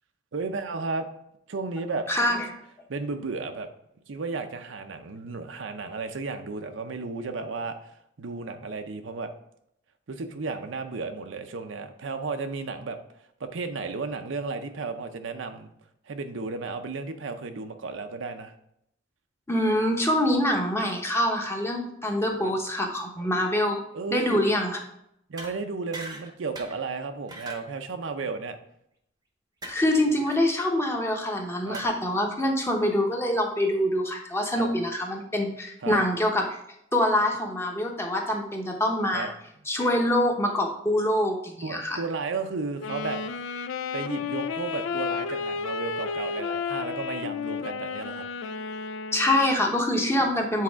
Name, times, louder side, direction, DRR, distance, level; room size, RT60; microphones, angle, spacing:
voice 1, 0.3-1.1 1.5-2.1 2.9-3.7 4.1-9.3 10.1-13.0 13.4-15.7 16.1-18.5 22.4-22.5 23.9-24.4 25.3-28.6 31.6-31.8 34.5-34.7 35.8-36.0 39.1-39.3 41.6-43.2 43.9-48.2, right 4 dB, 75° right, 7 dB, 0.6 m, -33 dB
voice 2, 2.1-2.5 19.5-23.8 24.1-24.8 29.7-36.6 36.9-39.3 39.7-42.0 49.1-50.6, left 1 dB, 15° left, 2 dB, 0.9 m, -25 dB
sound 1, 25.4-25.6 25.9-26.3 26.6-26.8 27.3-27.7 29.6-29.8 30.2-30.4 31.7-31.9, right 2 dB, 20° right, 0.8 m, -39 dB
Wind instrument woodwind instrument, 42.8-49.6, left 5 dB, 80° left, 0.4 m, -32 dB
7.5 x 4.1 x 3.5 m, 0.75 s
head